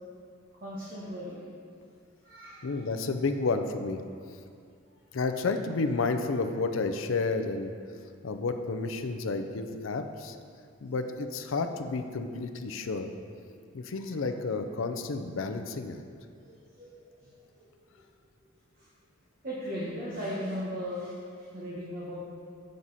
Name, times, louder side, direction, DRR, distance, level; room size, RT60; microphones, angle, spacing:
voice 1, 0.6-1.4 2.2-2.8 13.9-14.2 16.4-17.3 17.6-17.8 18.8-18.9 19.4-22.1, equal, 45° right, -7 dB, 1.3 m, -38 dB
voice 2, 2.6-4.0 5.1-7.7 8.2-10.4 10.8-13.1 13.7-16.0, left 3 dB, 70° left, 7 dB, 0.5 m, -31 dB
7.4 x 6.4 x 4.1 m, 2.3 s
head